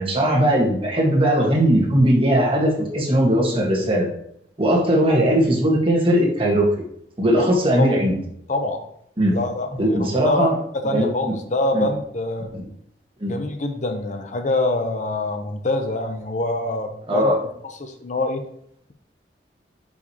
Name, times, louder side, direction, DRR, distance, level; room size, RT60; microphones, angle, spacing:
voice 1, 0.0-4.1 4.6-6.7 7.2-8.1 9.2-9.4 9.8-10.5 10.9-11.1 11.7-11.9 12.5-12.6 13.2-13.3 17.1-17.4, right 1 dB, 30° right, -1 dB, 1.4 m, -19 dB
voice 2, 8.5-8.8 9.3-10.5 10.8-12.5 13.3-17.3 17.8-18.4, left 2 dB, 45° left, 6 dB, 0.6 m, -25 dB
9.1 x 4.8 x 2.8 m, 0.71 s
head